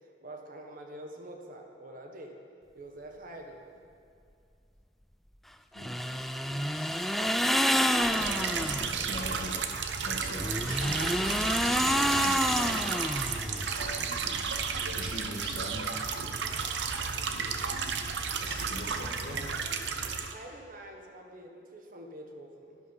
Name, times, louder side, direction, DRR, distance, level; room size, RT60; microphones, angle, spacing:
voice 1, 0.0-2.4 2.7-3.8 20.3-22.8, right 1 dB, 50° right, 3 dB, 1.4 m, -46 dB
sound 1, 5.8-8.9 10.4-13.7, equal, ahead, 0.4 m, -28 dB
voice 2, 6.5-9.6 10.0-13.1 13.7-14.2 15.0-15.9 18.4-19.5, left 1 dB, 55° left, -1 dB, 2.0 m, -42 dB
sound 2, 7.9-20.3, right 5 dB, 85° right, 0.8 m, -33 dB
11.5 x 11.0 x 5.5 m, 2.4 s
head